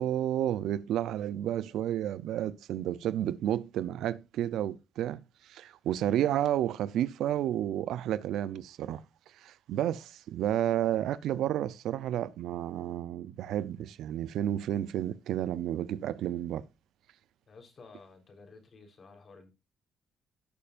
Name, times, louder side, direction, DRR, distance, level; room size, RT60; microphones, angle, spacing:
voice 1, 0.0-5.2 5.5-9.0 9.4-16.6, right 11 dB, 80° right, 0.6 m, -31 dB
voice 2, 17.5-19.5, left 4 dB, 45° left, 3.8 m, -53 dB
17.0 x 6.8 x 2.5 m
cardioid pair, 90°, 0 cm